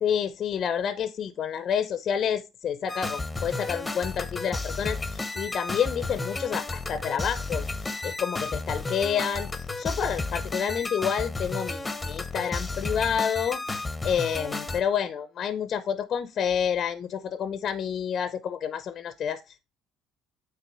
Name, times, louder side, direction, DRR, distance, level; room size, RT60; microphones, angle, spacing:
voice 1, 0.0-7.7 8.0-19.7, left 8 dB, 50° left, 0.7 m, -29 dB
sound 1, 2.9-14.8, left 3 dB, 20° left, 0.9 m, -32 dB
9.2 x 3.3 x 4.7 m
supercardioid pair, 80°, 0 cm